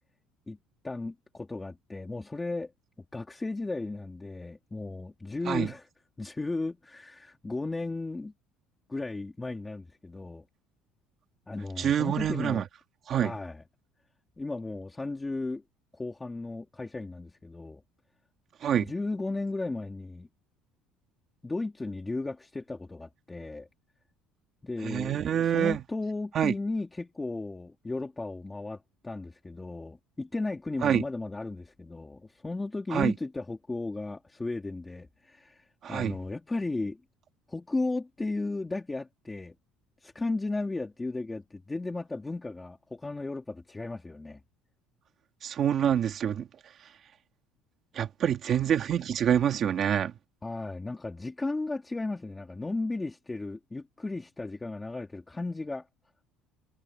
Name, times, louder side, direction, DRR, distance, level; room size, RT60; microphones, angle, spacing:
voice 1, 0.8-2.7 3.1-5.9 6.2-8.3 8.9-10.4 11.5-12.6 13.2-13.6 14.4-15.6 15.9-17.8 18.7-20.3 21.4-23.7 24.6-37.0 37.5-39.5 40.0-44.4 50.4-55.8, left 2 dB, 10° left, 3.3 m, -35 dB
voice 2, 11.8-12.6 13.1-13.3 18.6-18.8 24.8-25.8 26.3-26.5 30.8-31.0 32.9-33.1 35.8-36.2 45.4-46.5 47.9-50.1, right 9 dB, 35° right, 2.8 m, -26 dB
cardioid pair, 155°, 0 cm